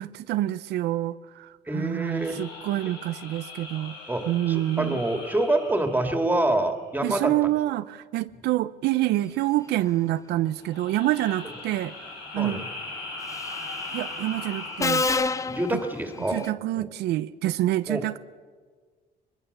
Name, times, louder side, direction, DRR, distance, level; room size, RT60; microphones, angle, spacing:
voice 1, 0.0-4.0 4.3-5.0 7.0-11.9 12.3-12.6 13.9-15.1 15.7-15.8 16.3-18.2, right 15 dB, 80° right, 0.6 m, -27 dB
voice 2, 1.7-2.4 4.1-7.3 12.4-12.6 15.5-16.5 16.8-16.9 17.9-18.0, right 1 dB, 10° right, 2.5 m, -26 dB
sound 1, 2.0-6.8 10.6-15.3, left 3 dB, 85° left, 6.4 m, -40 dB
Subway metro underground, 13.3-13.7 14.8-16.5, left 3 dB, 20° left, 0.6 m, -27 dB
21.5 x 21.5 x 6.9 m
cardioid pair, 110°, 17 cm